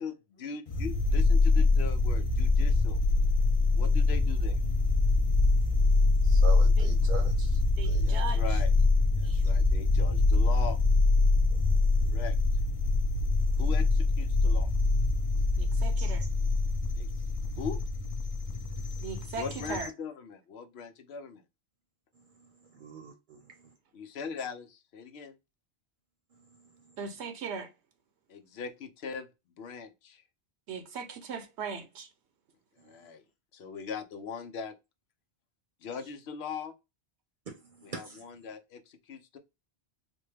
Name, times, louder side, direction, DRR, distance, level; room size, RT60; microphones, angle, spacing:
voice 1, 0.0-3.0 3.7-4.6 8.0-8.7 9.2-10.8 12.0-12.3 13.6-14.7 17.0-17.1 17.6-17.8 19.4-21.4 23.9-25.3 28.3-29.3 29.6-30.2 32.8-33.2 33.5-34.7 35.8-36.7 37.8-39.4, left 6 dB, 70° left, 0.8 m, -40 dB
sound 1, 0.7-19.9, left 3 dB, 40° left, 0.6 m, -25 dB
voice 2, 6.2-7.6 7.8-8.1 9.2-9.5 11.5-11.6 16.0-16.3 22.7-23.4 37.5-37.6 37.9-38.2, right 5 dB, 50° right, 0.8 m, -42 dB
voice 3, 7.8-8.4 15.6-16.2 19.0-19.9 27.0-27.7 30.7-32.1, right 5 dB, 80° right, 0.9 m, -38 dB
4.2 x 2.2 x 3.2 m
omnidirectional pair, 1.1 m